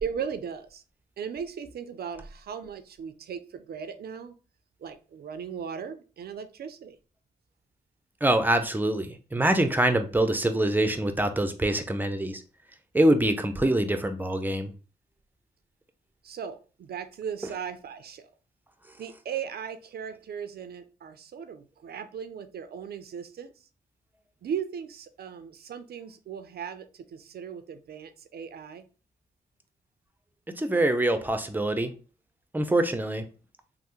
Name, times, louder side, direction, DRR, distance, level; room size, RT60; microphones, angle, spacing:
voice 1, 0.0-0.8 1.2-4.3 4.8-7.0 16.2-18.3 19.0-23.7 24.4-28.9, right 7 dB, 60° right, 10 dB, 0.4 m, -37 dB
voice 2, 8.2-12.4 12.9-14.7 30.5-31.9 32.5-33.2, right 1 dB, 10° right, 8 dB, 0.5 m, -24 dB
3.3 x 2.0 x 3.0 m, 0.35 s
supercardioid pair, 50°, 18 cm